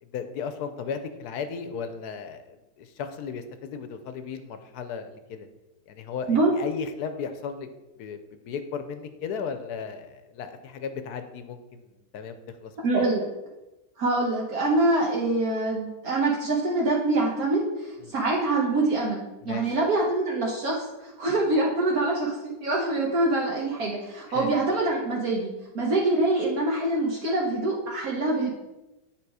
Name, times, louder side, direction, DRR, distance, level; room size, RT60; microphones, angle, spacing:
voice 1, 0.1-5.5 5.9-7.7 8.0-11.8 12.1-13.0 18.0-18.1 19.4-19.8 24.3-24.5, left 6 dB, 70° left, 9 dB, 1.1 m, -35 dB
voice 2, 12.8-13.2 14.0-19.2 19.4-25.5 25.7-28.5, right 2 dB, 65° right, -3 dB, 1.4 m, -25 dB
8.7 x 3.9 x 4.7 m, 1.0 s
omnidirectional pair, 1.8 m